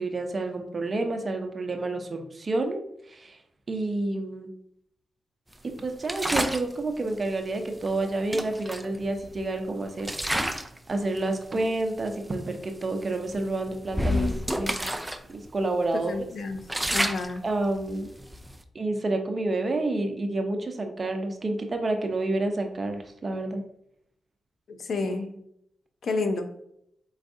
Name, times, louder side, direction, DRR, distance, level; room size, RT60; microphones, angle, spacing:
voice 1, 0.0-2.8 3.1-3.4 3.7-4.5 5.8-14.3 14.6-14.8 15.3-16.3 17.4-18.1 18.7-23.6 25.0-25.4, right 2 dB, 40° right, 5 dB, 0.7 m, -29 dB
sound 1, 6.0-6.7 7.9-8.0 8.3-9.5 10.0-10.8 11.1-11.4 12.1-12.2 12.5-12.7 13.3-15.2 15.5-15.6 16.1-18.6, equal, 10° right, 0.4 m, -30 dB
voice 2, 16.1-16.6 16.9-17.4 24.7-25.3 26.0-26.5, left 3 dB, 65° left, 7 dB, 0.6 m, -30 dB
4.4 x 4.0 x 2.6 m, 0.74 s
cardioid pair, 80°, 0 cm